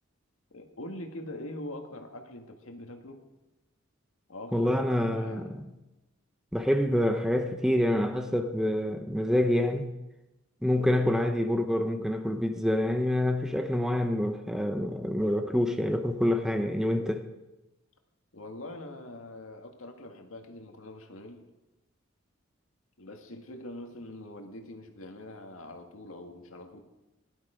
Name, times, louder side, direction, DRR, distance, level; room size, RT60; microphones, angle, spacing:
voice 1, 0.5-3.2 4.3-5.5 18.3-21.4 23.0-26.8, left 1 dB, 90° left, 1.8 m, -43 dB
voice 2, 4.5-5.6 6.5-9.9 10.6-17.3, left 1 dB, 5° right, 0.8 m, -27 dB
17.5 x 11.5 x 5.0 m
head